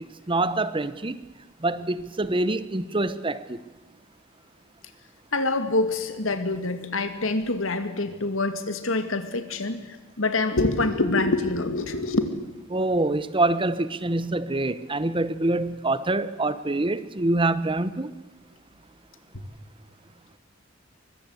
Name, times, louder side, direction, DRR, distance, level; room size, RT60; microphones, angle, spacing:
voice 1, 0.3-1.2 1.6-3.6 12.7-18.1, right 2 dB, 25° right, 1.0 m, -25 dB
voice 2, 5.3-9.8 10.2-12.3, left 2 dB, 80° left, 2.4 m, -25 dB
23.5 x 22.0 x 8.1 m
head